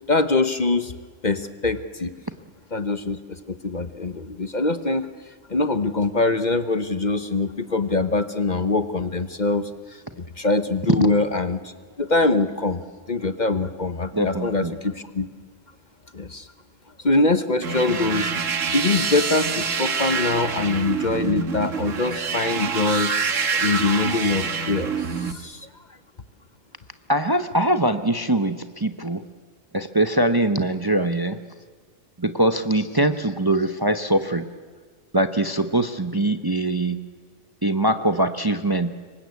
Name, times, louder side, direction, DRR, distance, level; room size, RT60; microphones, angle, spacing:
voice 1, 0.1-0.9 1.2-2.1 2.7-5.1 5.5-11.7 12.0-12.8 13.1-15.3 16.1-16.5 17.0-18.3 18.7-23.1 23.6-25.7, left 3 dB, 40° left, 10 dB, 1.0 m, -23 dB
voice 2, 14.1-14.7 27.1-29.3 29.7-31.4 32.2-34.5 35.1-37.1 37.6-38.9, right 1 dB, 20° right, 9 dB, 0.8 m, -22 dB
sound 1, 17.6-25.3, right 5 dB, 80° right, 1.7 m, -26 dB
26.5 x 23.5 x 8.3 m, 1.5 s
omnidirectional pair, 1.3 m